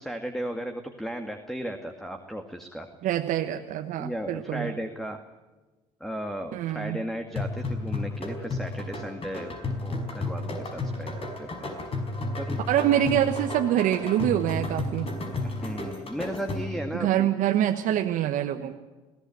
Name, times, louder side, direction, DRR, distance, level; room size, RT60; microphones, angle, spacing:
voice 1, 0.0-2.9 4.0-5.2 6.0-11.7 12.4-12.6 15.4-17.3 18.6-18.7, equal, ahead, 6 dB, 2.0 m, -35 dB
voice 2, 3.0-4.7 6.5-7.0 12.7-15.1 16.9-18.7, right 11 dB, 65° right, 5 dB, 1.3 m, -25 dB
sound 1, 7.4-16.9, left 2 dB, 40° left, 5.3 m, -32 dB
21.0 x 16.5 x 9.2 m, 1.2 s
hypercardioid pair, 65°, 14 cm